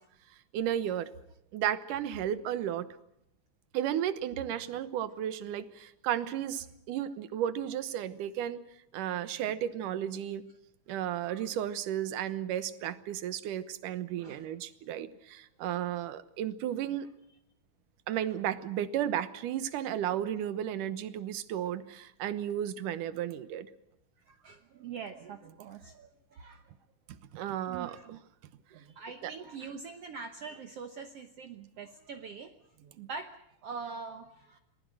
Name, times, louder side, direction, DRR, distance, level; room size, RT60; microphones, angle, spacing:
voice 1, 0.5-1.1 1.5-2.9 3.7-8.6 8.9-10.4 10.9-17.1 18.1-23.7 27.3-28.2 29.2-29.3, right 10 dB, 75° right, 13 dB, 2.6 m, -33 dB
voice 2, 14.2-14.6 20.0-20.2 24.2-26.6 27.7-28.2 28.7-33.3 33.6-34.6, right 5 dB, 60° right, 6 dB, 1.8 m, -44 dB
27.5 x 20.0 x 6.3 m, 0.81 s
omnidirectional pair, 3.7 m